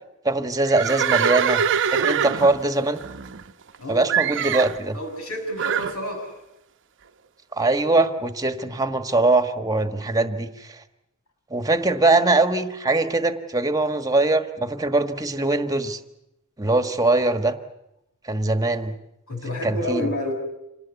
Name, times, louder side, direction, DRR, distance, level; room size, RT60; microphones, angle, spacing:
voice 1, 0.2-1.6 1.9-3.0 3.9-5.0 7.5-10.8 11.5-16.0 16.6-17.5 18.2-18.9 19.6-20.1, right 2 dB, 15° right, 9 dB, 1.4 m, -22 dB
Livestock farm animals working animals, 0.7-3.8 4.1-4.8 5.6-6.0, right 8 dB, 60° right, 0.8 m, -23 dB
voice 2, 4.9-6.4 19.3-20.3, left 1 dB, 80° left, 4 dB, 6.5 m, -29 dB
26.5 x 19.0 x 8.3 m, 0.85 s
head